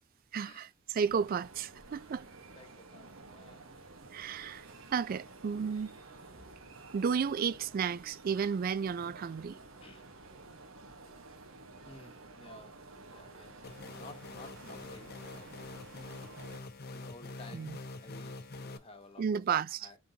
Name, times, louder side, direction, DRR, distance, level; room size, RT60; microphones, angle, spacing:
voice 1, 0.3-2.3 4.1-4.7 4.9-6.0 6.9-9.6 17.5-17.8 19.2-19.9, right 6 dB, 45° right, 0.3 m, -33 dB
sound 1, 1.0-16.6, right 3 dB, 90° right, 1.2 m, -52 dB
voice 2, 2.5-3.7 9.8-10.1 11.8-12.8 13.1-15.6 16.9-19.4 19.8-20.0, left 2 dB, 30° left, 1.0 m, -54 dB
sound 2, 13.6-18.8, left 3 dB, 50° left, 0.6 m, -45 dB
5.3 x 3.6 x 2.8 m
head